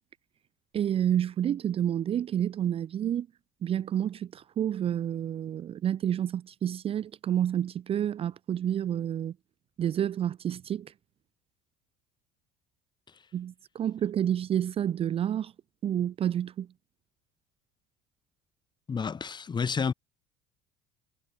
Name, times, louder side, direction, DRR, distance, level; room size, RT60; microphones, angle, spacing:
voice 1, 0.7-3.3 3.6-9.3 9.8-10.9 13.3-15.5 15.8-16.7, right 10 dB, 35° right, 0.6 m, -29 dB
voice 2, 18.9-19.9, left 6 dB, 25° left, 1.6 m, -30 dB
hypercardioid pair, 70°, 17 cm